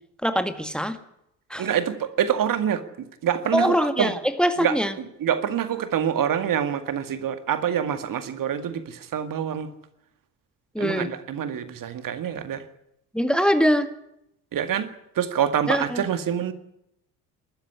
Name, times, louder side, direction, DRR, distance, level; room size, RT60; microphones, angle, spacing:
voice 1, 0.2-1.0 1.5-1.7 3.5-4.9 10.8-11.1 13.1-13.9 15.7-16.0, equal, ahead, 9 dB, 1.9 m, -23 dB
voice 2, 1.6-2.8 3.2-4.1 4.6-9.7 10.8-12.6 14.5-16.5, right 9 dB, 45° right, 10 dB, 2.0 m, -26 dB
20.0 x 13.5 x 9.8 m, 0.80 s
figure-of-eight pair, 55°, 45 cm